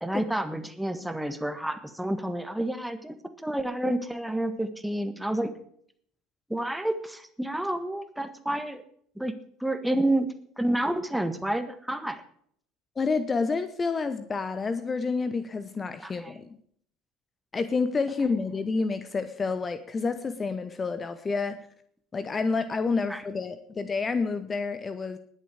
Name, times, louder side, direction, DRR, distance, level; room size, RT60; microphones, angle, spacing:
voice 1, 0.0-5.5 6.5-8.8 9.1-9.3 9.6-10.3 10.6-12.2 16.0-16.3 23.1-23.2, right 1 dB, 5° right, 9 dB, 1.6 m, -29 dB
voice 2, 13.0-16.6 17.5-21.7 22.1-25.2, left 4 dB, 25° left, 12 dB, 0.9 m, -29 dB
20.0 x 7.1 x 4.9 m, 0.62 s
figure-of-eight pair, 65°, 0 cm